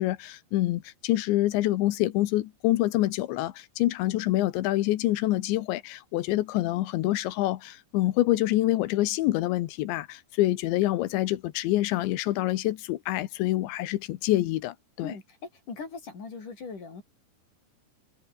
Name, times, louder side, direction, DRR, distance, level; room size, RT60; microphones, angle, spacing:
voice 1, 0.0-15.2, left 16 dB, 85° left, 3.4 m, -26 dB
voice 2, 15.7-17.0, left 4 dB, 45° left, 6.3 m, -39 dB
omnidirectional pair, 5.2 m